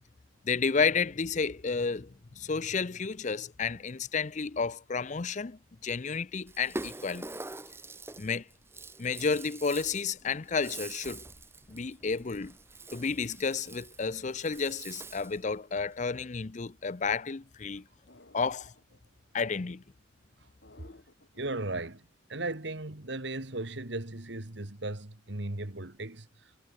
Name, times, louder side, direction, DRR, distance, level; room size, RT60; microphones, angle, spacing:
voice 1, 0.4-7.3 8.2-8.4 9.0-11.2 11.7-12.5 12.9-17.8 18.3-18.7 19.3-19.8 20.8-21.0, left 5 dB, 40° left, 0.6 m, -31 dB
Rattle (instrument), 6.5-15.4, right 2 dB, 10° right, 1.3 m, -44 dB
sound 1, 18.1-19.0 20.6-21.6, left 2 dB, 60° left, 3.0 m, -58 dB
voice 2, 21.4-26.5, right 2 dB, 60° right, 2.1 m, -37 dB
head